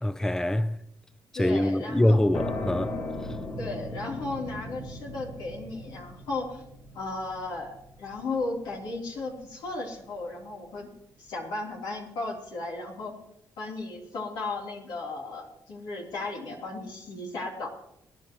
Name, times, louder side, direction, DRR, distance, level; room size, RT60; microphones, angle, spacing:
voice 1, 0.0-0.7 1.3-2.9, left 1 dB, 5° left, 0.6 m, -24 dB
voice 2, 1.3-2.2 3.6-6.6 6.9-10.9 11.2-13.1 13.6-17.7, left 3 dB, 90° left, 3.4 m, -35 dB
sound 1, 2.3-9.7, left 1 dB, 65° left, 3.2 m, -38 dB
24.5 x 10.5 x 3.1 m
cardioid pair, 75°, 7 cm